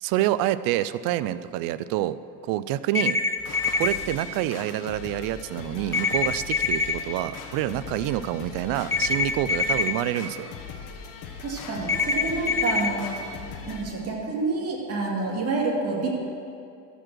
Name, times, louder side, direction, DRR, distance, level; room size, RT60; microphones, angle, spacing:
voice 1, 0.0-2.2 2.4-3.2 3.8-10.5, right 14 dB, 60° right, 16 dB, 0.5 m, -27 dB
sound 1, 2.9-3.9 5.9-6.9 8.9-9.9 11.9-12.9, left 4 dB, 5° left, 0.5 m, -24 dB
sound 2, 3.4-13.8, left 5 dB, 55° left, 1.4 m, -40 dB
voice 2, 11.4-16.1, right 3 dB, 40° right, -2 dB, 2.5 m, -28 dB
13.5 x 5.1 x 6.3 m, 2.5 s
supercardioid pair, 115°, 39 cm